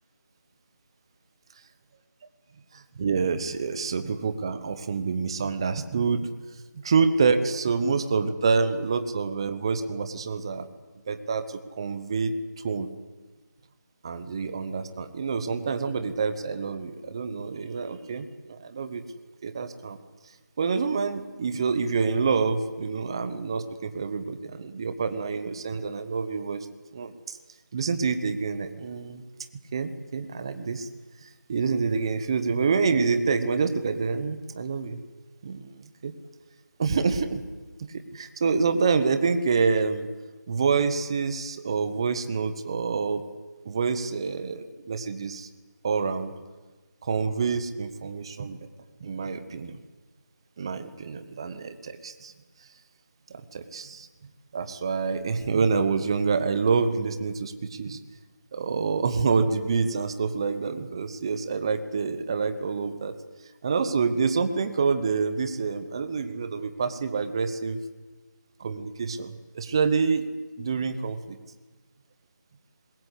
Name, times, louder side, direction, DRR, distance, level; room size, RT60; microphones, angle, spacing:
voice 1, 2.7-6.3 6.7-10.7 11.1-12.9 14.0-19.0 19.4-20.0 20.6-26.7 26.9-27.4 27.7-29.2 29.7-30.9 31.2-35.0 35.4-36.1 36.8-37.4 37.8-40.1 40.5-43.2 43.6-45.5 45.8-46.3 47.0-48.6 49.0-49.8 50.6-52.3 53.3-54.1 54.5-58.0 58.5-63.1 63.6-67.8 68.6-70.3 70.6-71.4, right 5 dB, 15° right, 10 dB, 1.0 m, -27 dB
26.5 x 21.0 x 8.1 m, 1.2 s
figure-of-eight pair, 170°, 10 cm